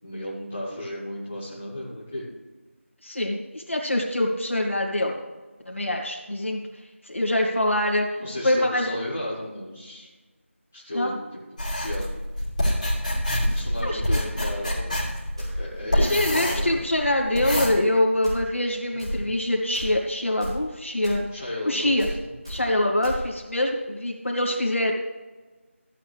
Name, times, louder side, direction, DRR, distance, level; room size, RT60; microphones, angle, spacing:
voice 1, 0.0-2.3 8.2-10.1 10.7-11.4 11.8-12.0 13.4-14.9 15.4-16.8 19.1-19.3 21.3-21.9, left 1 dB, 10° left, -10 dB, 0.9 m, -34 dB
voice 2, 3.0-5.2 5.6-6.6 7.0-8.1 8.4-9.0 10.9-11.2 13.8-14.2 15.9-21.3 21.6-22.1 22.5-24.9, left 1 dB, 65° left, 0 dB, 2.5 m, -24 dB
sound 1, 11.6-17.7, equal, 35° left, 3.0 m, -26 dB
sound 2, 14.6-14.8 15.4-15.6 16.5-16.7 17.5-17.6 18.2-18.4 19.0-19.2 19.7-19.9 20.4-20.6 21.0-21.2 22.0-22.2 22.4-22.6 23.0-23.2, equal, 20° right, 2.9 m, -32 dB
14.0 x 8.7 x 3.4 m, 1.3 s
figure-of-eight pair, 180°, 7 cm